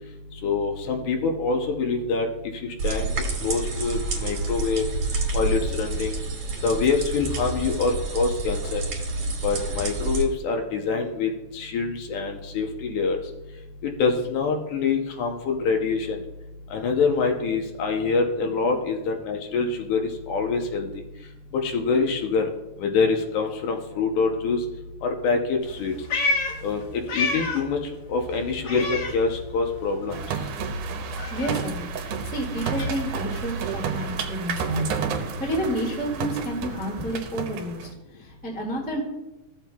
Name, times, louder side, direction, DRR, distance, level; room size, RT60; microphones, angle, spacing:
voice 1, 0.4-2.3 2.6-3.1 3.4-4.9 5.3-6.2 6.6-8.8 9.4-13.2 13.8-16.2 16.7-20.9 21.6-22.5 22.8-24.6 25.0-25.9 26.6-27.8 28.1-30.2, left 4 dB, 75° left, 3 dB, 2.1 m, -25 dB
sound 1, 2.8-10.2, right 3 dB, 60° right, 2.6 m, -29 dB
voice 2, 18.4-18.7 31.0-39.0, equal, 5° left, -2 dB, 0.8 m, -31 dB
Meow, 25.6-27.8 28.1-29.8 30.1-34.2, left 3 dB, 55° left, 2.1 m, -31 dB
sound 2, 30.1-37.9, right 5 dB, 75° right, 2.2 m, -31 dB
15.0 x 7.3 x 2.3 m, 0.99 s
omnidirectional pair, 3.8 m